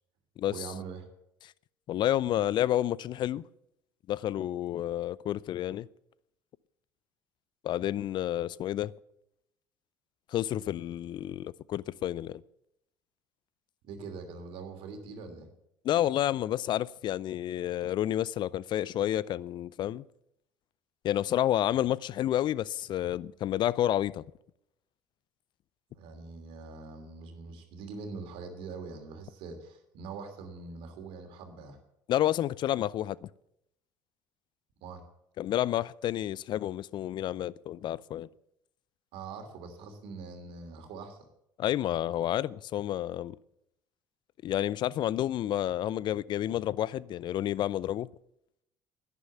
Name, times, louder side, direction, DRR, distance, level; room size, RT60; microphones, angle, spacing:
voice 1, 0.5-1.1 13.8-15.5 21.7-21.8 25.9-31.8 34.8-35.0 39.1-41.3, right 4 dB, 65° right, 2.8 m, -43 dB
voice 2, 1.9-3.4 4.1-5.9 7.6-8.9 10.3-12.4 15.8-20.0 21.0-24.2 32.1-33.3 35.4-38.3 41.6-43.4 44.4-48.1, left 12 dB, 50° left, 0.5 m, -30 dB
11.0 x 9.9 x 7.3 m
hypercardioid pair, 65°, 10 cm